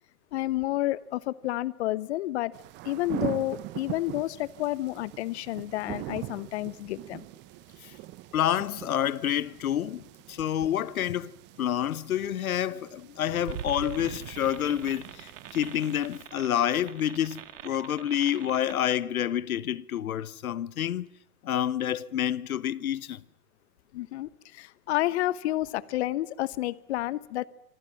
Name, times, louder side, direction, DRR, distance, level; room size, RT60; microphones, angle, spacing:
voice 1, 0.3-2.5 2.8-7.2 23.9-27.5, left 15 dB, 45° left, 1.2 m, -30 dB
sound 1, 2.5-16.2, right 18 dB, 25° right, 0.9 m, -42 dB
voice 2, 8.3-11.3 11.6-21.1 21.4-23.2, left 10 dB, 70° left, 1.2 m, -28 dB
sound 2, 13.5-19.0, right 10 dB, 55° right, 3.1 m, -42 dB
27.0 x 24.0 x 7.3 m
hypercardioid pair, 125°, 44 cm